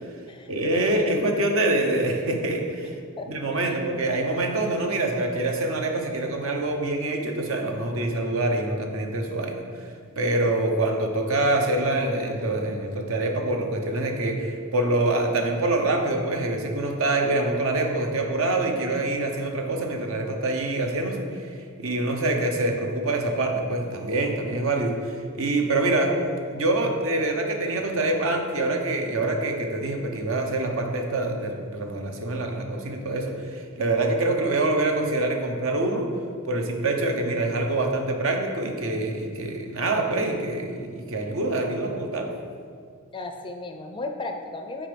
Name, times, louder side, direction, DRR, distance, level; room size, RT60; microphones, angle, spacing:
voice 1, 0.5-3.0 3.3-9.9 10.2-26.2 26.5-36.1 36.4-42.3, right 2 dB, 65° right, 2 dB, 0.9 m, -25 dB
voice 2, 43.1-44.9, left 2 dB, 20° left, 5 dB, 0.4 m, -35 dB
7.4 x 4.6 x 5.2 m, 2.2 s
head